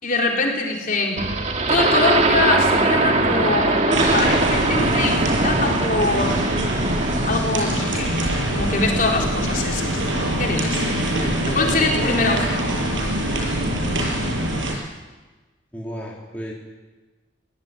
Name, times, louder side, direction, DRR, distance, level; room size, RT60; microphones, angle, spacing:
voice 1, 0.0-1.2 1.7-6.4 7.3-8.1 8.5-10.0 10.4-10.8 11.5-12.7, left 3 dB, 45° left, -1 dB, 4.5 m, -23 dB
sound 1, 1.2-7.5, right 2 dB, 35° right, 1.8 m, -21 dB
sound 2, 2.3-13.9, equal, 10° right, 4.6 m, -40 dB
sound 3, 3.9-14.8, right 1 dB, 70° right, 6.3 m, -24 dB
voice 2, 11.0-11.8 13.8-14.2 15.7-16.5, equal, 10° left, -4 dB, 3.5 m, -34 dB
23.5 x 18.0 x 9.5 m, 1.2 s
head